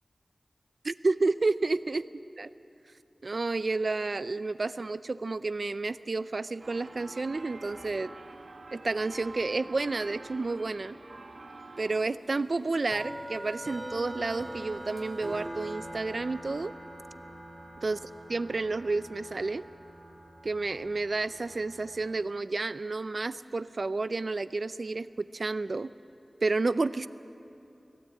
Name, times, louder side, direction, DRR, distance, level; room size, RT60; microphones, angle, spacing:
voice 1, 0.8-2.0 2.4-2.5 3.2-8.1 8.7-11.0 11.8-16.7 17.8-18.0 18.3-19.6 20.4-25.9 26.4-27.1, right 3 dB, 65° right, 14 dB, 0.5 m, -30 dB
sound 1, 6.6-12.0, right 3 dB, 80° right, 1.4 m, -47 dB
sound 2, 12.3-22.1, right 1 dB, 20° right, 3.7 m, -43 dB
20.5 x 16.5 x 8.5 m, 2.7 s
wide cardioid pair, 70°, 0 cm